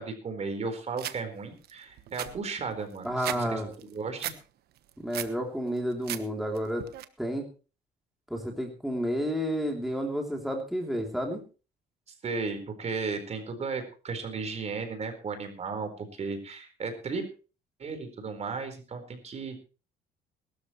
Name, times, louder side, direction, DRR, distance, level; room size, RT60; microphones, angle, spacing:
voice 1, 0.0-4.3 12.2-17.2 17.8-19.6, right 4 dB, 40° right, 7 dB, 4.4 m, -35 dB
sound 1, 1.0-1.2 1.6-1.7 2.0-3.4 3.7-4.4 4.8-5.4 5.8-6.2 6.5-7.0, right 12 dB, 70° right, 1.2 m, -36 dB
voice 2, 3.0-3.7 5.0-6.9 7.2-7.4 8.3-11.4, equal, ahead, 1 dB, 3.2 m, -30 dB
20.5 x 13.0 x 3.2 m, 0.35 s
cardioid pair, 110°, 17 cm